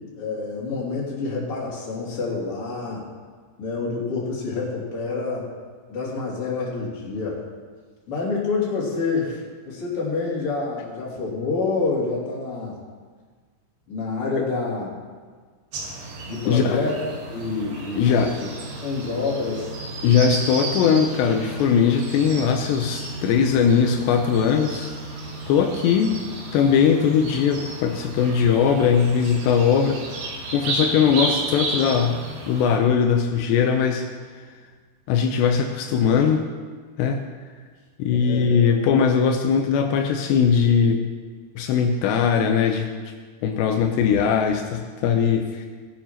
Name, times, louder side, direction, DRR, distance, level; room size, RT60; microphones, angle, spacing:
voice 1, 0.2-3.0 3.6-5.5 5.9-7.4 8.1-12.8 13.9-14.9 16.3-17.0 17.3-18.5 18.8-19.8 38.1-38.7, left 4 dB, 35° left, -5 dB, 3.3 m, -27 dB
sound 1, 15.7-32.8, right 2 dB, 70° right, 3.8 m, -33 dB
voice 2, 16.5-16.8 18.0-18.3 20.0-25.0 25.5-26.2 26.5-34.5 35.1-36.5 37.0-37.2 38.0-41.0 41.6-42.9 43.4-45.7, left 7 dB, 80° left, 4 dB, 2.9 m, -20 dB
17.5 x 7.0 x 5.8 m, 1.5 s
omnidirectional pair, 5.0 m